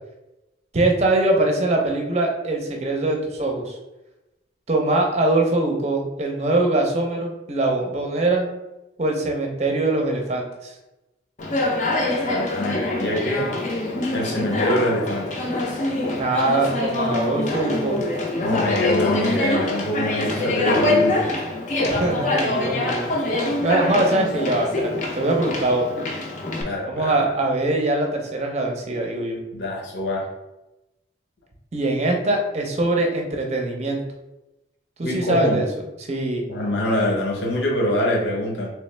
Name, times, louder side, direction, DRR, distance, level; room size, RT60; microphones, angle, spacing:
voice 1, 0.7-3.7 4.7-8.5 9.0-10.7 16.1-18.0 21.8-23.1 23.6-25.9 26.9-29.4 31.7-34.0 35.0-35.7 36.1-36.4, right 2 dB, 35° right, 1 dB, 0.6 m, -22 dB
Conversation, 11.4-26.6, left 2 dB, 40° left, 0.5 m, -24 dB
voice 2, 12.2-13.5 14.1-15.5 18.4-21.3 26.6-27.3 29.5-30.3 35.0-35.6 36.5-38.7, left 1 dB, 75° left, -2 dB, 0.9 m, -25 dB
3.3 x 3.1 x 3.3 m, 0.99 s
head